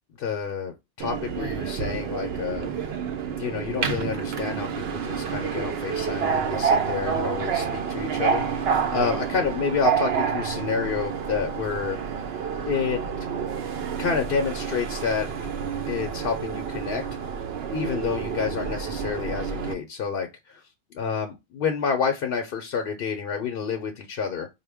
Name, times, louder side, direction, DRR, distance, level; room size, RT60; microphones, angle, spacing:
voice 1, 0.2-2.7 3.3-12.0 12.7-13.0 14.0-15.3 15.9-17.1 17.7-20.6 20.9-24.5, left 6 dB, 70° left, 0.8 m, -29 dB
Subway metro underground, 1.0-19.7, right 6 dB, 80° right, 0.8 m, -28 dB
4.3 x 2.1 x 3.3 m
omnidirectional pair, 1.0 m